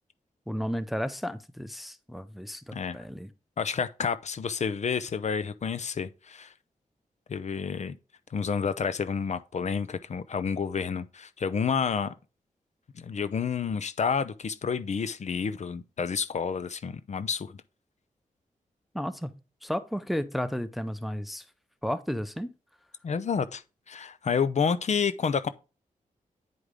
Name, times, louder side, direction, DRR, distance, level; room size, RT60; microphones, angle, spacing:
voice 1, 0.5-3.3 18.9-19.3 19.6-21.4 21.8-22.5, equal, ahead, 0.5 m, -33 dB
voice 2, 3.6-6.5 7.3-8.0 8.3-12.1 13.0-17.6 23.0-23.6 23.9-25.5, left 6 dB, 55° left, 0.6 m, -29 dB
9.4 x 4.9 x 3.6 m
wide cardioid pair, 120°, 14 cm